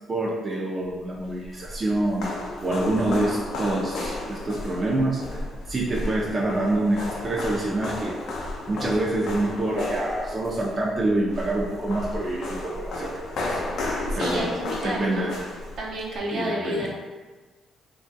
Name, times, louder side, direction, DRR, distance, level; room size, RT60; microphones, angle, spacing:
voice 1, 0.1-2.3 2.6-5.4 5.7-8.2 8.7-13.6 14.2-14.5 14.8-15.4 16.3-16.9, right 2 dB, 35° right, -4 dB, 0.4 m, -26 dB
sound 1, 1.2-16.2, left 2 dB, 75° left, 0.5 m, -33 dB
voice 2, 14.1-15.3 15.8-16.9, right 1 dB, 70° right, -3 dB, 0.7 m, -30 dB
2.9 x 2.3 x 2.7 m, 1.3 s
cardioid pair, 90°, 0 cm